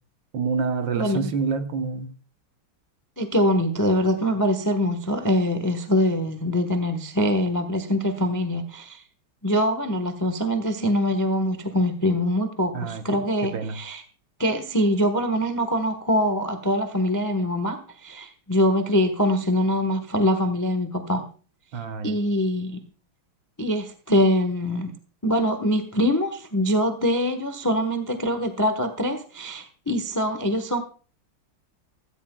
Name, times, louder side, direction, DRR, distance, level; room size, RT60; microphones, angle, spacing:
voice 1, 0.3-2.1 12.7-13.0 13.5-13.8 21.7-22.2, right 5 dB, 65° right, 7 dB, 1.7 m, -27 dB
voice 2, 0.9-1.3 3.2-9.0 9.4-14.0 14.4-21.2 22.0-22.8 23.6-24.9 25.2-30.8, equal, 15° left, 7 dB, 0.6 m, -23 dB
16.0 x 14.5 x 2.2 m, 0.39 s
omnidirectional pair, 2.3 m